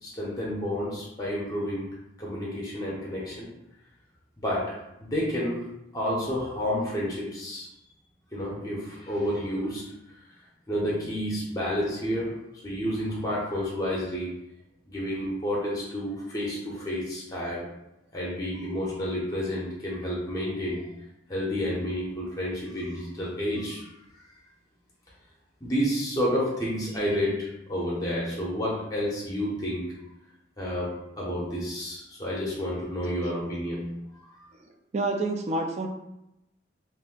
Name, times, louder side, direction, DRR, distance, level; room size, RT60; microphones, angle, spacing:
voice 1, 0.0-3.5 4.4-5.6 5.9-7.7 8.3-10.2 10.7-14.3 14.9-17.7 18.1-20.9 21.3-23.9 24.2-24.3 25.6-30.0 30.6-34.4, equal, 20° left, -5 dB, 0.6 m, -30 dB
voice 2, 34.9-35.9, right 2 dB, 35° right, 3 dB, 0.3 m, -27 dB
2.5 x 2.1 x 3.6 m, 0.85 s
head